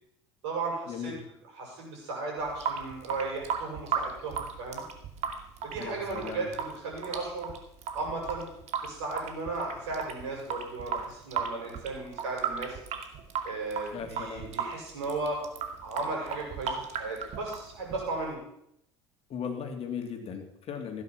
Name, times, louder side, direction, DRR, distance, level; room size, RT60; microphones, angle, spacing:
voice 1, 0.4-1.1 1.5-4.8 5.6-7.5 7.9-8.5 8.8-12.8 13.4-15.4 15.8-18.4, right 3 dB, 70° right, -1 dB, 7.0 m, -35 dB
Water tap faucet / Sink (filling or washing) / Drip, 2.4-18.3, right 7 dB, 50° right, 2.4 m, -36 dB
voice 2, 5.8-6.5 13.9-14.5 19.3-21.0, left 6 dB, 40° left, 4 dB, 3.1 m, -37 dB
16.0 x 10.0 x 6.0 m, 0.76 s
figure-of-eight pair, 65°, 15 cm